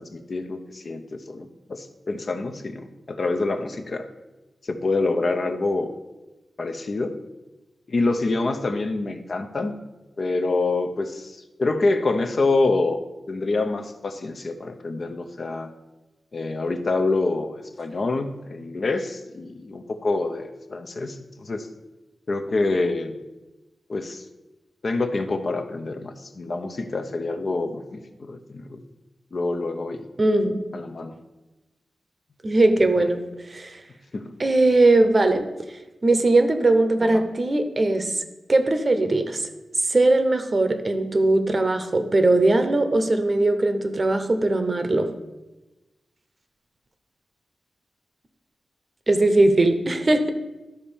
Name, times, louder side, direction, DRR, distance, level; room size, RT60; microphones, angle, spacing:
voice 1, 0.0-4.1 4.6-5.9 6.6-7.2 7.9-9.7 10.2-13.0 13.3-15.7 16.3-21.7 22.3-23.2 23.9-24.2 24.8-28.8 29.3-30.0 30.7-31.2 32.8-33.1 34.1-34.3 37.0-37.2, left 3 dB, 45° left, 6 dB, 0.7 m, -26 dB
voice 2, 30.2-30.6 32.4-33.2 33.5-33.8 34.4-35.5 36.0-38.2 38.5-39.5 39.8-45.1 49.1-50.3, right 2 dB, 30° right, 7 dB, 0.8 m, -20 dB
12.0 x 4.3 x 7.1 m, 1.1 s
wide cardioid pair, 165°, 0 cm